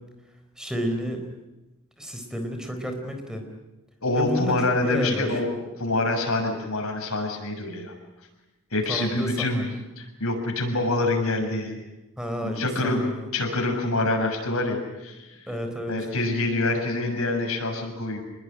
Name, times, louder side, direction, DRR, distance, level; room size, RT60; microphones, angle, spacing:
voice 1, 0.6-1.2 2.0-3.4 4.1-4.5 4.8-5.3 8.9-9.8 12.2-13.1 15.5-15.9, equal, 5° right, 5 dB, 4.2 m, -31 dB
voice 2, 4.0-7.9 8.7-9.7 10.0-11.8 12.4-13.0 13.3-15.3 15.9-18.2, left 2 dB, 85° left, 2 dB, 7.0 m, -26 dB
27.0 x 21.0 x 10.0 m, 1.0 s
head